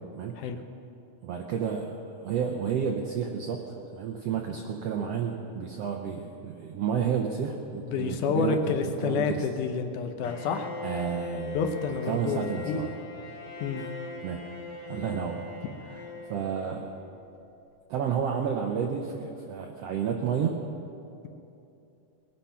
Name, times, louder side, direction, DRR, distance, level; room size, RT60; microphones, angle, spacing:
voice 1, 1.2-8.7 9.0-9.4 10.8-11.6 12.1-13.0 13.8-13.9 14.2-14.4 14.9-15.4 15.8-16.9 17.9-20.7, right 7 dB, 75° right, 2 dB, 1.4 m, -31 dB
voice 2, 7.8-10.7 11.5-12.8 13.6-13.8, left 5 dB, 75° left, 6 dB, 2.3 m, -29 dB
Bowed string instrument, 10.2-17.2, left 3 dB, 50° left, 2.5 m, -40 dB
21.5 x 9.8 x 5.7 m, 2.8 s
omnidirectional pair, 3.9 m